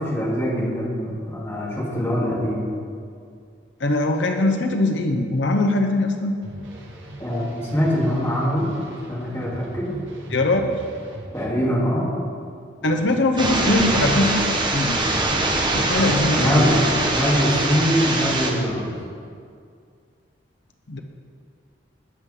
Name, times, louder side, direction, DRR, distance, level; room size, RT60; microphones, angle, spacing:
voice 1, 0.0-2.7 7.2-8.7 9.1-9.9 11.3-12.1 12.8-12.9 15.9-16.0 16.3-16.7 17.1-18.9, equal, 15° left, -7 dB, 3.2 m, -23 dB
voice 2, 3.8-6.4 10.3-10.8 12.8-15.0 15.7-16.7 20.9-21.0, left 2 dB, 70° left, 5 dB, 0.9 m, -21 dB
sound 1, 6.4-11.5, right 1 dB, 75° right, 2.0 m, -39 dB
sound 2, 13.4-18.5, right 2 dB, 25° right, 1.2 m, -22 dB
19.5 x 7.4 x 3.8 m, 2.3 s
head